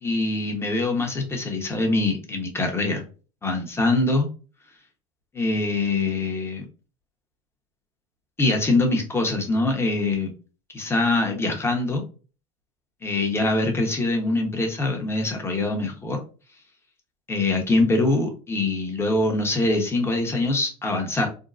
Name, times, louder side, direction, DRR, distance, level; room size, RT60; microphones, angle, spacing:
voice 1, 0.0-3.0 3.4-4.3 5.3-6.7 8.4-10.3 10.7-12.0 13.0-16.2 17.3-21.3, left 2 dB, 15° left, 2 dB, 1.0 m, -23 dB
3.7 x 2.2 x 2.5 m, 0.36 s
hypercardioid pair, 85°, 16 cm